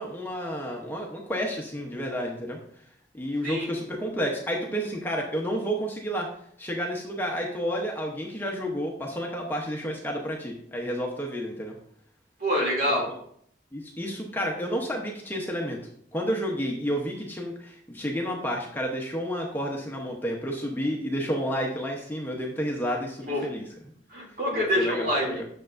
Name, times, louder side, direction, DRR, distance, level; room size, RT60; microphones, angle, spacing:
voice 1, 0.0-2.6 3.1-6.3 6.6-11.7 13.7-15.8 16.1-23.6 24.5-25.4, equal, 10° left, 0 dB, 0.8 m, -30 dB
voice 2, 12.4-13.1 23.3-23.4 24.1-25.4, equal, 50° right, -2 dB, 2.7 m, -26 dB
9.2 x 6.5 x 2.5 m, 0.67 s
head